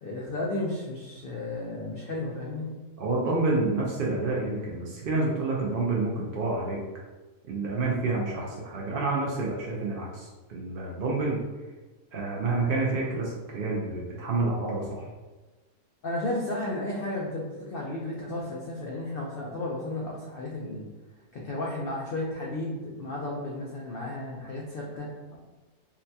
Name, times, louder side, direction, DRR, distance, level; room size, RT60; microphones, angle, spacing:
voice 1, 0.0-2.7 16.0-20.9 21.3-25.4, left 2 dB, 90° left, -3 dB, 0.4 m, -33 dB
voice 2, 3.0-6.8 7.4-11.4 12.1-15.1, right 3 dB, 85° right, -3 dB, 0.4 m, -28 dB
3.9 x 2.2 x 2.7 m, 1.2 s
omnidirectional pair, 1.6 m